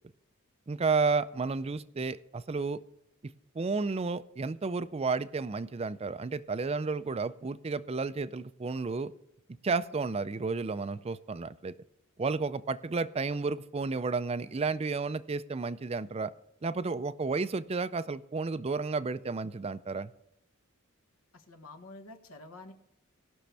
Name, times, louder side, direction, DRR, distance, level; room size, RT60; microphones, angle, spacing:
voice 1, 0.7-2.8 3.5-9.1 9.6-11.7 12.2-16.3 16.6-20.1, right 4 dB, 30° right, 14 dB, 0.4 m, -32 dB
voice 2, 21.3-22.7, left 2 dB, 75° left, 5 dB, 1.4 m, -48 dB
18.5 x 6.3 x 3.4 m, 0.89 s
head